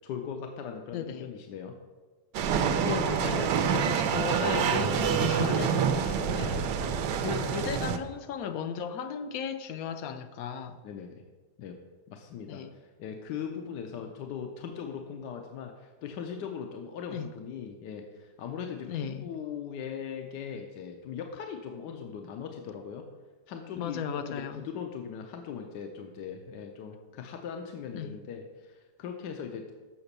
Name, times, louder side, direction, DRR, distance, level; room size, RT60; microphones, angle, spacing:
voice 1, 0.0-1.7 3.2-3.8 4.5-4.9 5.4-5.8 6.1-6.3 10.8-11.2 11.6-11.8 12.1-23.1 23.5-29.7, left 7 dB, 85° left, 4 dB, 1.3 m, -39 dB
voice 2, 0.9-1.3 2.8-6.6 7.2-10.8 12.5-12.7 17.1-17.3 18.9-19.3 23.7-24.6 27.9-28.2, left 7 dB, 70° left, 10 dB, 0.9 m, -36 dB
sound 1, 2.3-8.0, right 7 dB, 85° right, 1.3 m, -27 dB
7.0 x 5.8 x 6.7 m, 1.3 s
omnidirectional pair, 1.8 m